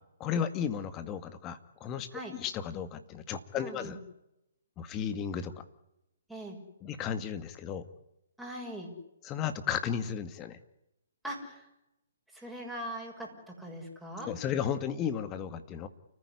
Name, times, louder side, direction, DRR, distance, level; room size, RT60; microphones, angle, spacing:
voice 1, 0.2-4.0 4.8-5.5 6.8-7.9 9.2-10.6 14.2-15.9, left 8 dB, 25° left, 11 dB, 2.1 m, -34 dB
voice 2, 3.6-4.0 6.3-6.6 8.4-8.9 11.2-11.6 12.3-14.3, right 1 dB, ahead, -2 dB, 7.0 m, -41 dB
30.0 x 15.0 x 9.9 m, 0.89 s
hypercardioid pair, 140°, 0 cm